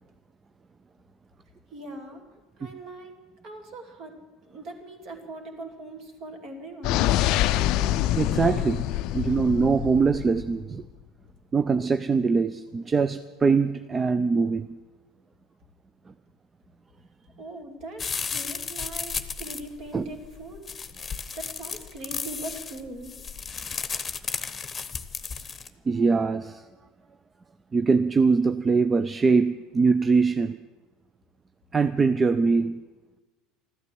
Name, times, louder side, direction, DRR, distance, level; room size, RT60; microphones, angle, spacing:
voice 1, 1.7-2.2 2.6-4.1 4.4-7.1 17.4-20.7 21.3-23.1, right 1 dB, 50° right, 4 dB, 2.7 m, -40 dB
sound 1, 6.8-10.7, left 13 dB, 55° left, 0.4 m, -25 dB
voice 2, 8.1-8.8 9.1-10.9 11.5-14.8 16.1-16.2 19.9-20.1 25.8-26.7 27.7-30.6 31.7-32.8, right 4 dB, 25° right, 11 dB, 0.5 m, -23 dB
sound 2, 18.0-25.7, left 5 dB, 25° left, 1.0 m, -34 dB
14.0 x 12.0 x 7.6 m, 1.2 s
hypercardioid pair, 70°, 0 cm